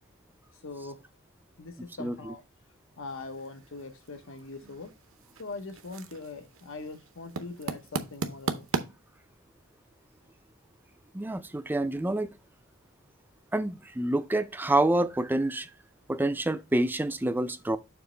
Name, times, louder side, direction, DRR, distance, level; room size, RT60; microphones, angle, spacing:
voice 1, 0.5-1.0 1.6-2.4 3.0-4.9 5.4-8.8, left 3 dB, 70° left, 0.8 m, -42 dB
voice 2, 2.0-2.3 11.1-12.3 13.5-15.7 16.1-17.8, right 1 dB, 10° right, 0.4 m, -27 dB
sound 1, 3.1-8.8, right 4 dB, 70° right, 0.8 m, -38 dB
7.0 x 3.0 x 4.9 m
head